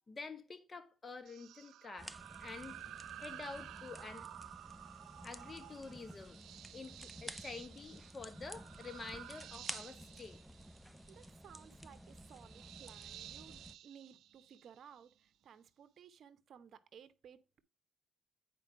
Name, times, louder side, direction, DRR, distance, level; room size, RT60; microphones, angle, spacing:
voice 1, 0.1-2.1 2.4-2.8 3.2-4.3 5.2-6.4 6.7-10.4, left 4 dB, 35° left, 1.5 m, -48 dB
sound 1, 1.3-15.1, right 12 dB, 80° right, 0.4 m, -53 dB
sound 2, 2.0-13.8, equal, ahead, 0.5 m, -52 dB
voice 2, 11.1-17.6, right 8 dB, 60° right, 0.9 m, -58 dB
9.0 x 4.6 x 4.6 m
cardioid pair, 90°, 0 cm